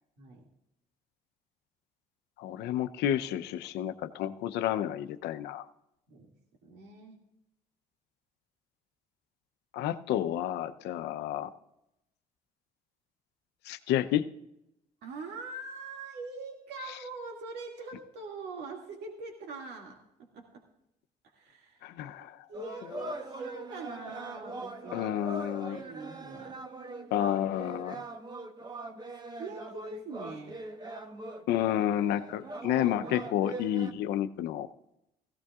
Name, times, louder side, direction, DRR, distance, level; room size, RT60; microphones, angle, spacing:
voice 1, 0.2-0.5 6.1-6.3 6.6-7.2 15.0-20.6 21.2-21.9 22.2-25.1 25.6-26.6 29.3-30.6 32.4-33.3, right 3 dB, 75° right, 0 dB, 2.3 m, -43 dB
voice 2, 2.4-5.6 9.7-11.5 13.7-14.3 21.8-22.4 24.9-25.8 27.1-28.0 31.5-34.7, left 11 dB, 85° left, 11 dB, 0.7 m, -30 dB
sound 1, 22.5-33.9, right 2 dB, 25° right, 1.2 m, -42 dB
17.0 x 15.5 x 2.4 m, 0.84 s
cardioid pair, 110°, 17 cm